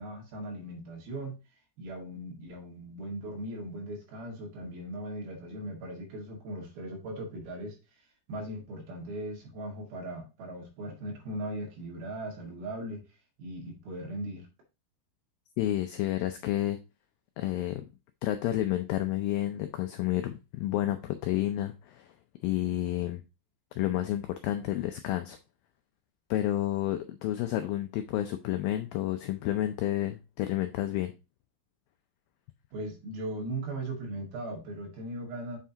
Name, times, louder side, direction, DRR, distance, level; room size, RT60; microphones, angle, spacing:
voice 1, 0.0-1.4 1.8-7.8 8.3-13.1 13.4-14.5 32.7-35.6, right 1 dB, 65° right, 3.7 m, -38 dB
voice 2, 15.6-16.8 17.4-17.8 18.2-22.1 22.4-23.2 23.8-25.4 26.3-31.1, left 13 dB, 85° left, 2.0 m, -30 dB
7.4 x 5.7 x 2.8 m
omnidirectional pair, 4.9 m